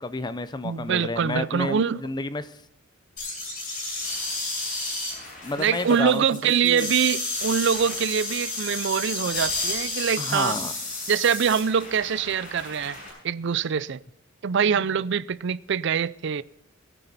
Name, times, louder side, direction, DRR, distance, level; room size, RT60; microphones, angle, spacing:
voice 1, 0.0-2.6 5.4-6.9 10.2-10.7 14.7-14.8, left 3 dB, 20° left, 0.5 m, -31 dB
voice 2, 0.6-2.0 5.6-10.6 11.1-13.0 13.2-14.0 14.4-16.4, right 7 dB, 60° right, 0.4 m, -24 dB
sound 1, 3.2-13.1, left 2 dB, 40° left, 7.1 m, -32 dB
22.5 x 9.1 x 4.1 m
head